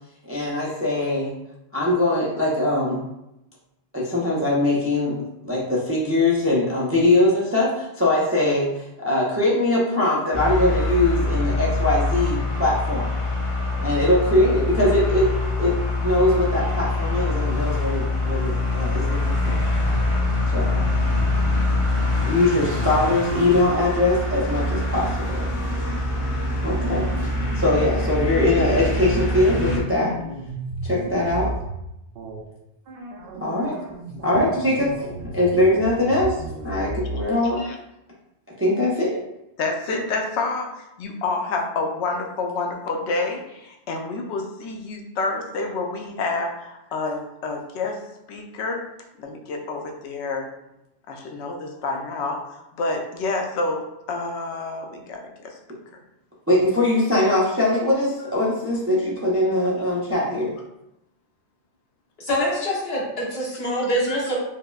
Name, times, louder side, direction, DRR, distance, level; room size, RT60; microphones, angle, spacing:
voice 1, 0.2-1.3 1.7-3.0 3.9-13.2 13.8-15.3 15.6-19.6 20.5-20.8 22.2-25.5 26.6-27.1 27.5-30.2 30.8-31.5 33.4-33.8 34.2-34.9 35.3-36.4 36.6-37.6 38.6-39.2 56.5-60.5, left 1 dB, 20° right, -5 dB, 0.4 m, -21 dB
sound 1, 10.3-29.8, left 2 dB, 35° left, 0.7 m, -24 dB
sound 2, 26.7-31.8 32.1-32.4 32.9-37.3, right 1 dB, 65° right, 0.7 m, -34 dB
voice 2, 39.6-48.0 48.3-48.8 49.2-50.5 51.1-55.6, left 3 dB, 90° left, 2 dB, 0.9 m, -28 dB
voice 3, 62.2-64.3, equal, 65° left, -6 dB, 1.3 m, -25 dB
5.2 x 2.1 x 2.3 m, 0.87 s
omnidirectional pair, 1.1 m